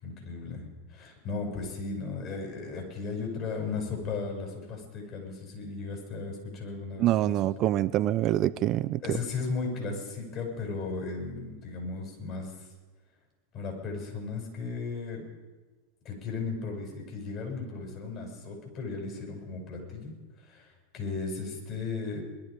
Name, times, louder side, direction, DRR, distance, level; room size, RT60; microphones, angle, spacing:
voice 1, 0.0-7.4 9.0-12.7 13.5-15.2 16.0-20.1 20.4-22.2, left 4 dB, 45° left, 1 dB, 7.3 m, -36 dB
voice 2, 7.0-9.0, right 13 dB, 45° right, 14 dB, 0.5 m, -25 dB
21.0 x 12.5 x 5.2 m, 1.3 s
hypercardioid pair, 100°, 0 cm